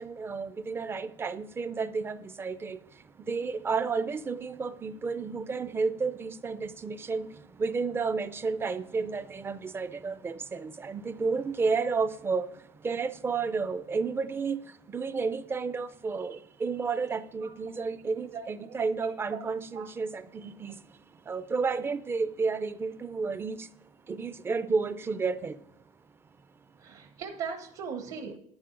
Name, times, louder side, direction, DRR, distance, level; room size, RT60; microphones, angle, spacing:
voice 1, 0.0-2.8 3.3-7.3 7.6-12.5 12.8-14.6 14.9-20.8 21.3-23.7 24.1-25.6, right 4 dB, 20° right, 0.4 m, -31 dB
voice 2, 18.3-19.4 19.7-19.8 26.8-28.4, right 6 dB, 55° right, 1.1 m, -39 dB
11.0 x 9.5 x 3.8 m
cardioid pair, 155°, 13 cm